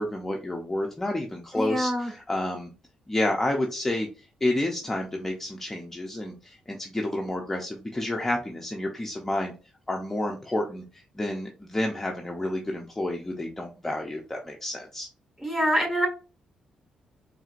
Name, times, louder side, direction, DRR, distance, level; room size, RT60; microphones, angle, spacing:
voice 1, 0.0-2.7 3.1-4.1 4.4-9.5 9.9-10.8 11.2-15.1, left 1 dB, 10° left, 1 dB, 0.6 m, -30 dB
voice 2, 1.5-2.1 15.4-16.1, equal, 15° right, 0 dB, 1.6 m, -25 dB
4.3 x 3.3 x 2.5 m, 0.34 s
cardioid pair, 120°, 2 cm